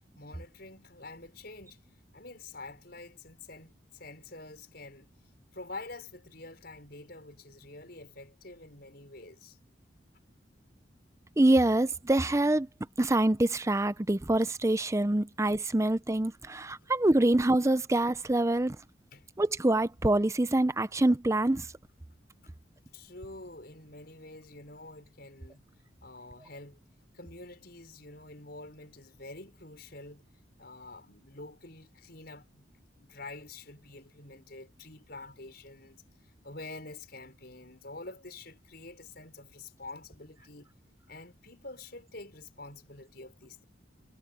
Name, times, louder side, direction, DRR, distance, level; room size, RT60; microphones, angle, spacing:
voice 1, 0.1-1.9 2.1-5.1 5.5-9.6 19.1-19.3 22.4-22.5 22.9-25.6 26.0-26.8 27.1-30.2 30.6-32.6 33.0-40.7 41.1-43.7, left 2 dB, 55° left, 6.2 m, -47 dB
voice 2, 11.4-12.7 13.0-18.8 19.4-21.7, right 1 dB, 15° right, 0.6 m, -25 dB
head